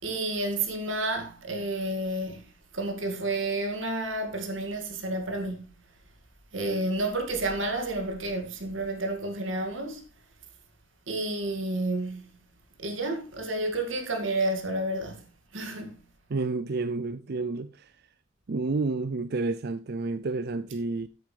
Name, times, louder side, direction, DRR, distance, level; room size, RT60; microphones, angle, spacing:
voice 1, 0.0-2.4 2.7-5.6 6.5-10.0 11.1-12.2 12.8-15.2 15.5-16.0, right 2 dB, 75° right, 2.4 m, -30 dB
voice 2, 16.3-17.9 18.5-21.1, right 3 dB, 50° right, 0.5 m, -30 dB
12.5 x 8.9 x 3.4 m
head